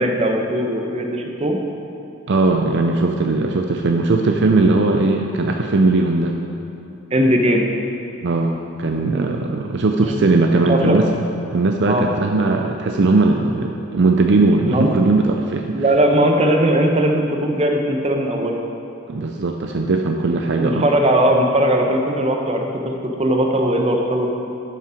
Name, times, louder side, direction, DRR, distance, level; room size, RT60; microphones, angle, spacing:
voice 1, 0.0-1.6 7.1-7.6 10.0-10.2 10.6-11.1 11.9-12.0 14.7-14.9 15.7-18.5 20.5-24.3, right 1 dB, 30° right, 2 dB, 0.9 m, -19 dB
voice 2, 2.3-6.3 8.2-11.0 11.5-15.8 19.1-20.9, right 3 dB, 55° right, 3 dB, 0.5 m, -18 dB
12.5 x 5.5 x 5.0 m, 2.7 s
head